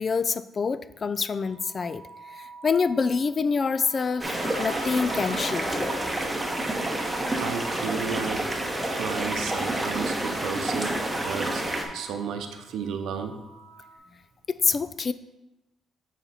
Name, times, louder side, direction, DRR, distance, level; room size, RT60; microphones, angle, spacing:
voice 1, 0.0-2.0 2.6-5.9 14.5-15.1, left 5 dB, 40° left, 14 dB, 0.3 m, -26 dB
sound 1, 1.4-8.4 8.9-10.3 10.6-14.0, right 1 dB, 55° left, 2.4 m, -48 dB
sound 2, 4.2-11.8, right 1 dB, 15° right, 1.0 m, -29 dB
voice 2, 7.4-8.5 8.9-11.6 11.9-13.4, right 6 dB, 80° right, 7 dB, 0.7 m, -33 dB
8.1 x 4.2 x 4.2 m, 0.99 s
cardioid pair, 90°, 0 cm